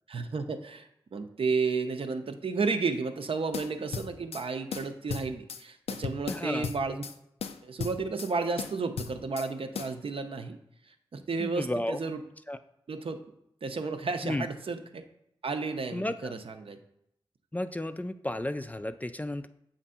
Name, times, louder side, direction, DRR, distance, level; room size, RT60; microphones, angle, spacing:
voice 1, 0.1-7.0 7.6-10.6 11.1-12.2 12.9-13.2 13.6-15.0 15.4-16.8, right 4 dB, 65° right, 7 dB, 0.6 m, -32 dB
sound 1, 3.5-4.4 4.7-5.6 5.9-7.1 7.4-8.3 8.6-9.5 9.7-9.9, left 6 dB, 85° left, 0.4 m, -36 dB
voice 2, 6.3-6.7 11.4-12.0 12.5-12.6 14.2-14.5 15.9-16.3 17.5-19.5, left 1 dB, 15° left, 10 dB, 0.4 m, -33 dB
7.1 x 2.6 x 5.5 m, 0.79 s
cardioid pair, 40°, 10 cm